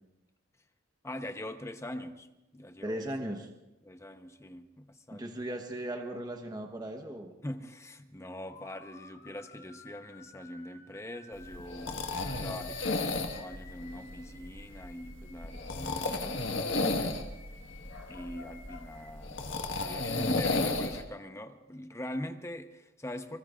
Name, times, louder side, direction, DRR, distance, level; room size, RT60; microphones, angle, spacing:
voice 1, 1.0-2.3 2.5-3.0 3.8-5.3 7.4-12.0 12.4-17.3 18.1-19.4 19.8-23.4, left 1 dB, 15° left, 7 dB, 0.9 m, -42 dB
voice 2, 2.8-3.5 5.1-7.3, right 1 dB, 20° right, 4 dB, 1.1 m, -37 dB
sound 1, 8.3-19.1, left 4 dB, 45° left, 3.9 m, -55 dB
sound 2, 11.4-21.0, left 2 dB, 75° left, 1.5 m, -33 dB
28.5 x 20.5 x 2.5 m, 0.97 s
head